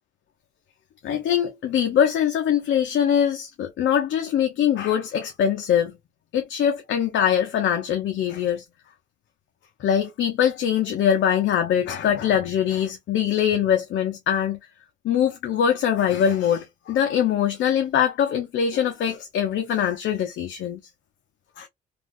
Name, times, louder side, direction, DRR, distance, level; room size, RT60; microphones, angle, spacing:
voice 1, 1.0-5.9 6.3-8.6 9.8-14.6 15.0-20.8 21.6-21.7, left 9 dB, 70° left, 0.7 m, -22 dB
3.2 x 2.5 x 2.5 m
cardioid pair, 90°, 20 cm